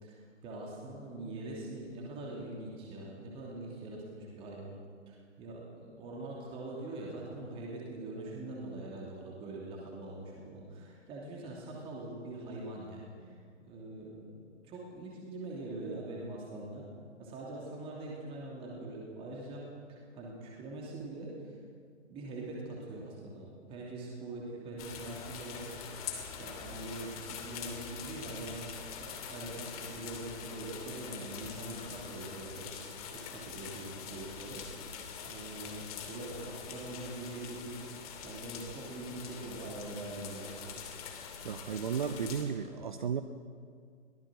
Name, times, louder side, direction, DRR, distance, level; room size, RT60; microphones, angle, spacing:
voice 1, 0.0-4.7 5.1-16.8 17.2-21.5 22.1-26.1 26.4-32.7 33.1-34.6 35.2-37.8 38.2-40.6, right 2 dB, 15° right, -3 dB, 2.9 m, -43 dB
sound 1, 24.8-42.4, left 7 dB, 30° left, 2.5 m, -44 dB
voice 2, 41.4-43.2, right 7 dB, 40° right, 10 dB, 0.9 m, -34 dB
23.0 x 18.0 x 6.4 m, 2.1 s
figure-of-eight pair, 135°, 38 cm